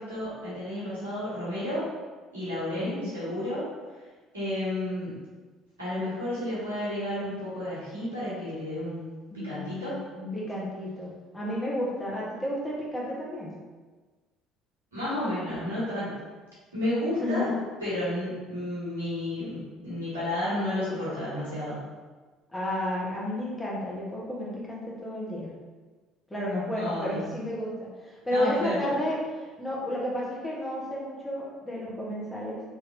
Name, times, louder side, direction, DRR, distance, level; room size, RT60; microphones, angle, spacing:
voice 1, 0.0-1.8 2.3-3.6 3.9-4.0 4.3-5.2 5.8-9.9 14.9-16.1 16.7-17.5 17.8-21.8 26.7-27.2 28.3-28.8, left 1 dB, 80° right, -10 dB, 1.3 m, -31 dB
voice 2, 2.7-3.1 9.3-13.5 17.2-17.5 22.5-25.5 26.3-32.6, left 1 dB, 10° left, -6 dB, 1.0 m, -32 dB
3.3 x 2.9 x 2.6 m, 1.3 s
figure-of-eight pair, 55°, 0 cm